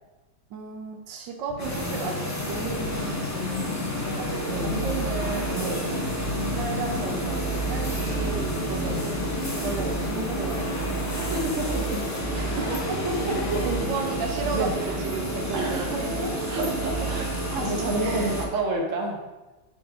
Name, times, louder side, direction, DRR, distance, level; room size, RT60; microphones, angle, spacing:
voice 1, 0.5-5.6 6.5-9.2 9.5-10.6 12.3-12.7 13.1-16.3 18.0-18.4, right 4 dB, 85° right, 3 dB, 1.5 m, -34 dB
Musical instrument, 1.5-15.2, left 5 dB, 70° left, 0.7 m, -35 dB
sound 1, 1.6-18.5, equal, 25° left, 0.4 m, -32 dB
sound 2, 4.1-18.4, right 4 dB, 30° right, 1.2 m, -33 dB
voice 2, 5.6-5.9 8.8-9.0 11.3-12.1 13.0-13.6 14.5-14.9 15.5-17.2 17.5-19.2, right 2 dB, 50° right, 1 dB, 1.4 m, -29 dB
7.1 x 4.5 x 4.7 m, 1.1 s
omnidirectional pair, 1.9 m